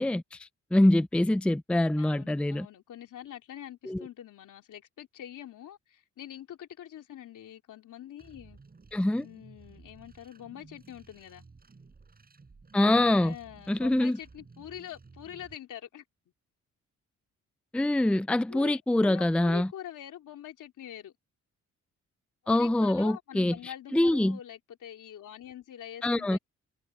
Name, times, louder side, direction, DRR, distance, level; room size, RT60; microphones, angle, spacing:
voice 1, 0.0-2.7 3.9-4.0 8.9-9.3 12.7-13.3 13.7-14.2 17.7-19.7 22.5-24.4 26.0-26.4, left 1 dB, 5° left, 0.5 m, -25 dB
voice 2, 2.0-8.6 9.2-11.5 13.2-16.0 18.5-21.1 22.4-26.4, left 11 dB, 75° left, 3.2 m, -45 dB
sound 1, 8.2-15.6, right 4 dB, 30° right, 6.6 m, -55 dB
cardioid pair, 100°, 31 cm